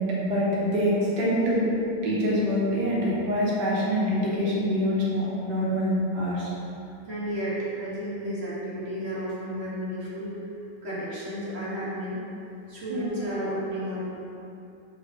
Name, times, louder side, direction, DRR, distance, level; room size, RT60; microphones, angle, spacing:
voice 1, 0.0-1.7 2.0-6.5 12.9-13.1, equal, 75° right, -6 dB, 1.9 m, -25 dB
voice 2, 7.1-10.4 10.8-12.2 12.7-14.2, equal, 40° right, -8 dB, 1.5 m, -32 dB
6.7 x 4.7 x 3.8 m, 2.7 s
omnidirectional pair, 1.9 m